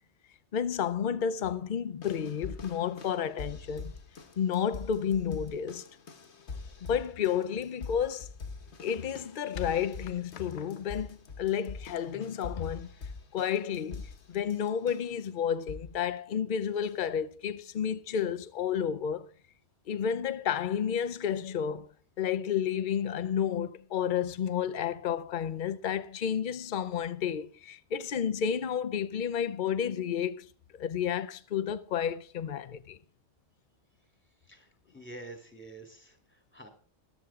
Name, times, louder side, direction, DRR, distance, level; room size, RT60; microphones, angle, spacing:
voice 1, 0.5-3.9 4.4-5.8 6.8-8.3 8.8-12.9 13.3-19.3 19.9-21.9 22.2-30.5 30.8-33.0, left 8 dB, 50° left, 0.8 m, -31 dB
sound 1, 2.0-15.2 15.7-16.0 16.8-16.9, left 4 dB, 70° left, 1.5 m, -44 dB
voice 2, 34.4-36.7, right 2 dB, 10° left, 3.0 m, -48 dB
13.5 x 12.0 x 3.7 m
omnidirectional pair, 1.2 m